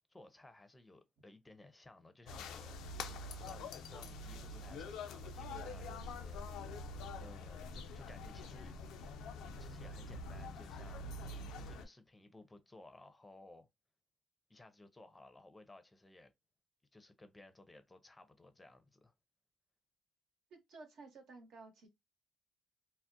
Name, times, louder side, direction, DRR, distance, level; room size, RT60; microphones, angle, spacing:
voice 1, 0.1-2.8 3.1-6.9 7.2-8.7 9.6-13.7 14.5-16.3 16.9-19.1, left 2 dB, 15° left, 0.5 m, -58 dB
sound 1, 2.3-11.9, left 2 dB, 90° left, 0.3 m, -45 dB
voice 2, 20.5-21.9, right 3 dB, 80° right, 0.9 m, -54 dB
2.4 x 2.0 x 2.5 m
cardioid pair, 90°, 0 cm